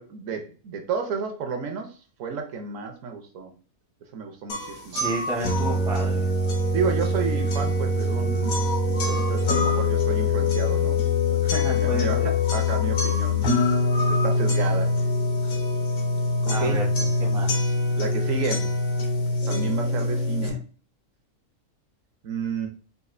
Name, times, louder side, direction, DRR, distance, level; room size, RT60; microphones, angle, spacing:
voice 1, 0.0-3.5 4.1-5.1 6.7-13.5 14.1-15.0 16.4-16.9 18.0-18.7 19.5-20.6 22.2-22.7, right 5 dB, 70° right, 4 dB, 1.0 m, -31 dB
sound 1, 4.5-20.5, left 2 dB, 80° left, 1.3 m, -24 dB
voice 2, 4.9-6.3 11.4-12.3 16.5-16.9 17.2-17.7, right 1 dB, 5° right, 0 dB, 0.4 m, -32 dB
4.1 x 2.4 x 2.4 m, 0.37 s
omnidirectional pair, 1.5 m